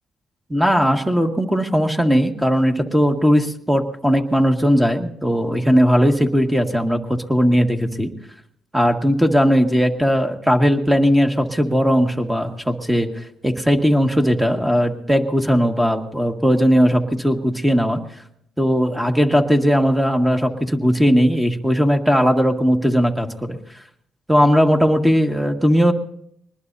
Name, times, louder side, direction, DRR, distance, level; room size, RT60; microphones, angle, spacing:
voice 1, 0.5-8.1 8.7-13.1 13.4-18.0 18.6-23.6 24.3-25.9, equal, 10° right, 3 dB, 1.9 m, -18 dB
23.5 x 20.0 x 2.7 m, 0.71 s
cardioid pair, 90°, 0 cm